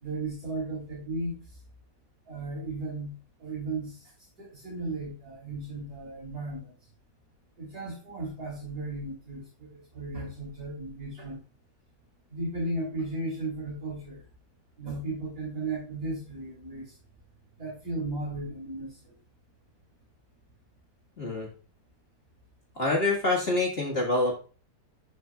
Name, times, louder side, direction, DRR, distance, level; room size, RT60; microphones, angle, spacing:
voice 1, 0.0-1.3 2.3-3.1 3.4-4.1 4.4-6.7 7.6-11.4 12.3-14.2 14.8-16.9 17.6-19.1, right 2 dB, 60° right, -3 dB, 3.3 m, -35 dB
voice 2, 21.2-21.5 22.8-24.3, left 2 dB, 35° left, -2 dB, 1.9 m, -26 dB
12.0 x 5.1 x 2.3 m, 0.37 s
omnidirectional pair, 1.8 m